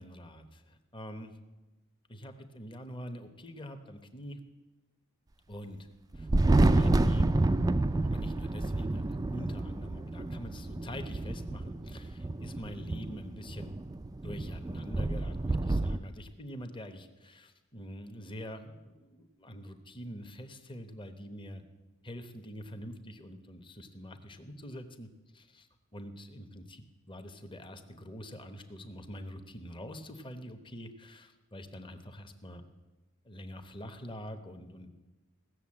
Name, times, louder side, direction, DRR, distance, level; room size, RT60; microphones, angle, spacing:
voice 1, 0.0-1.3 2.1-4.4 5.5-5.8 6.1-6.3 6.6-7.5 8.0-13.7 14.2-21.6 22.0-25.1 25.3-25.7 25.9-32.6 33.2-34.9, equal, 25° left, 8 dB, 1.0 m, -45 dB
Thunder, 6.1-16.0, right 2 dB, 15° right, 0.4 m, -29 dB
16.5 x 6.9 x 8.6 m, 1.1 s
head